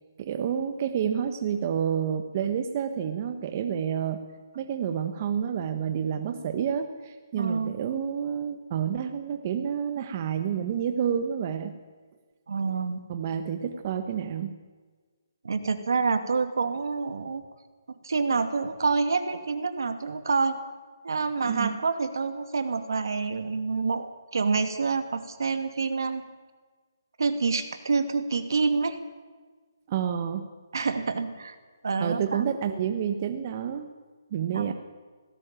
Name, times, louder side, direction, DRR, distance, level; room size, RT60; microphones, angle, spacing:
voice 1, 0.2-4.3 4.5-11.8 13.1-14.6 21.5-21.8 29.9-30.5 32.0-33.9 34.3-34.7, right 8 dB, 30° right, 8 dB, 1.2 m, -29 dB
voice 2, 7.4-7.7 12.5-13.1 15.4-17.4 17.9-20.6 21.0-26.2 27.2-29.0 30.7-31.5 31.8-32.4 34.5-34.7, right 4 dB, 70° right, 9 dB, 2.5 m, -27 dB
18.0 x 17.0 x 9.0 m, 1.4 s
hypercardioid pair, 165°, 2 cm